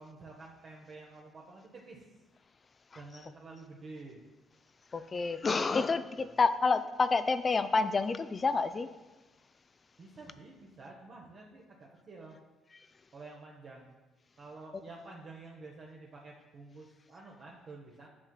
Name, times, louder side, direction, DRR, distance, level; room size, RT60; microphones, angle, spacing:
voice 1, 0.0-2.0 2.9-4.2 6.1-6.4 10.0-12.4 13.1-13.9 14.4-18.1, right 3 dB, 50° right, -2 dB, 0.8 m, -50 dB
voice 2, 4.9-8.9, left 4 dB, 35° left, 12 dB, 0.3 m, -28 dB
8.5 x 5.7 x 2.3 m, 1.2 s
figure-of-eight pair, 45°, 0 cm